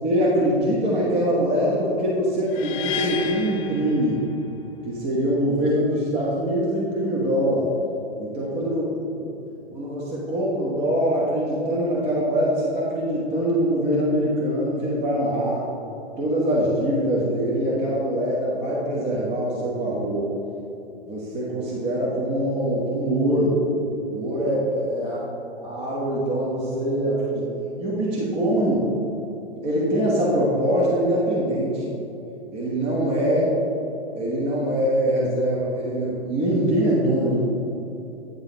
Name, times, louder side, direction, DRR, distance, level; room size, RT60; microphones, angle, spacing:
voice 1, 0.0-4.2 4.8-7.7 8.2-8.8 9.2-9.3 9.7-15.6 16.2-20.3 21.1-23.6 24.1-25.2 25.5-27.5 27.8-28.9 29.6-31.9 32.5-33.5 34.1-37.4, equal, 30° right, -5 dB, 1.3 m, -23 dB
sound 1, 2.5-4.7, left 6 dB, 45° left, 0.8 m, -32 dB
9.3 x 5.5 x 4.0 m, 3.0 s
hypercardioid pair, 120°, 34 cm